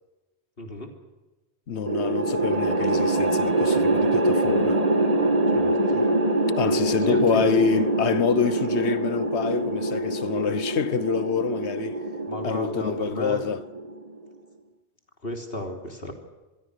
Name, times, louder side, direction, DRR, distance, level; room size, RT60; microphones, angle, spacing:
voice 1, 0.6-0.9 5.5-6.0 7.1-7.4 12.3-13.4 15.2-16.1, left 1 dB, 60° left, 3.6 m, -33 dB
voice 2, 1.7-4.8 6.6-12.0 12.4-13.6, left 6 dB, 90° left, 1.3 m, -26 dB
sound 1, 1.9-14.2, right 2 dB, 35° right, 1.5 m, -24 dB
26.0 x 22.0 x 6.6 m
omnidirectional pair, 1.1 m